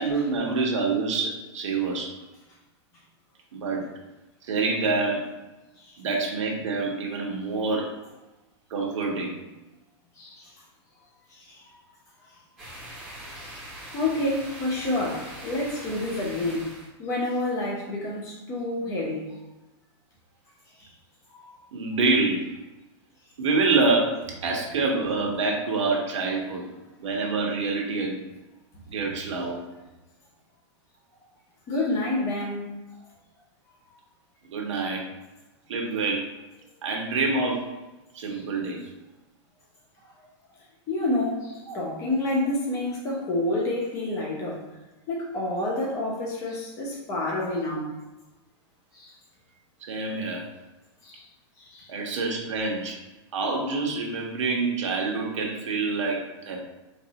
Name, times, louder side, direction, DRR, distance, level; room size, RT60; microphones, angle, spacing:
voice 1, 0.0-2.1 3.5-3.9 4.4-5.2 6.0-7.9 8.7-9.4 21.7-22.5 23.4-26.7 27.0-28.2 28.9-29.6 34.5-35.1 35.7-36.3 36.8-37.7 38.1-38.9 41.7-41.9 49.8-50.5 51.9-53.0 53.3-56.6, right 3 dB, 90° right, 0 dB, 1.0 m, -26 dB
voice 2, 10.2-10.5 11.3-11.7 13.3-13.6 13.9-16.7 17.0-19.4 20.8-20.9 21.3-21.5 31.7-32.7 38.3-38.4 40.9-44.7 45.1-47.9 48.9-49.1 51.0-51.2 51.6-51.9, left 2 dB, 20° left, -3 dB, 0.7 m, -29 dB
sound 1, 12.6-16.9, right 1 dB, 5° right, 1.0 m, -42 dB
4.1 x 2.6 x 2.8 m, 1.1 s
supercardioid pair, 175°, 15 cm